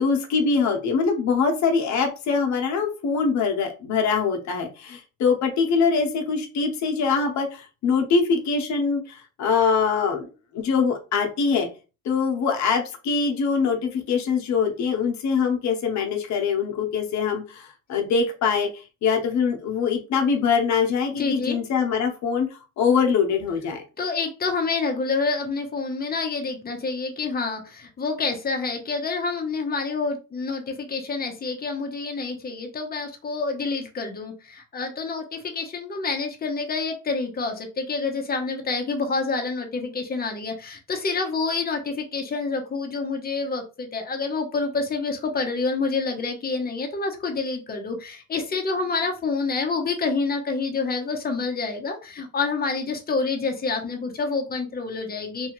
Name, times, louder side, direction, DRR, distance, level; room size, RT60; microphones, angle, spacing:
voice 1, 0.0-10.3 10.5-11.7 12.0-22.5 22.8-23.8, left 5 dB, 65° left, 3 dB, 0.7 m, -23 dB
voice 2, 21.2-21.6 24.0-55.5, left 4 dB, 30° left, 4 dB, 0.8 m, -28 dB
2.7 x 2.3 x 2.9 m, 0.32 s
cardioid pair, 90°, 30 cm